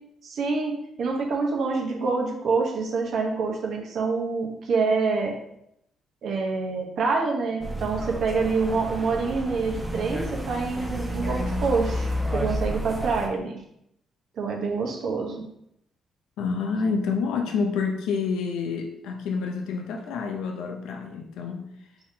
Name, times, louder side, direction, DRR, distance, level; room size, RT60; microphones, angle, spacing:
voice 1, 0.2-5.3 6.2-13.5 14.4-15.4, right 4 dB, 70° right, 1 dB, 0.9 m, -26 dB
sound 1, 7.6-13.3, equal, 15° right, 0.8 m, -30 dB
voice 2, 16.4-21.6, left 5 dB, 90° left, 3 dB, 0.5 m, -28 dB
4.6 x 3.6 x 2.8 m, 0.76 s
cardioid pair, 90°, 0 cm